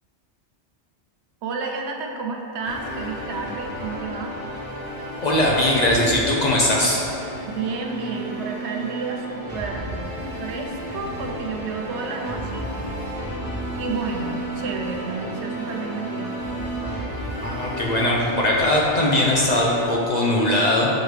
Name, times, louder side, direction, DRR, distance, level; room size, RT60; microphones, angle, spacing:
voice 1, 1.4-4.4 7.5-12.7 13.8-16.4, right 4 dB, 80° right, 2 dB, 0.9 m, -31 dB
sound 1, 2.6-19.9, right 1 dB, 10° left, 1.0 m, -32 dB
voice 2, 5.2-7.0 17.4-20.9, left 1 dB, 50° left, -3 dB, 0.6 m, -20 dB
6.5 x 4.7 x 3.2 m, 2.8 s
omnidirectional pair, 1.2 m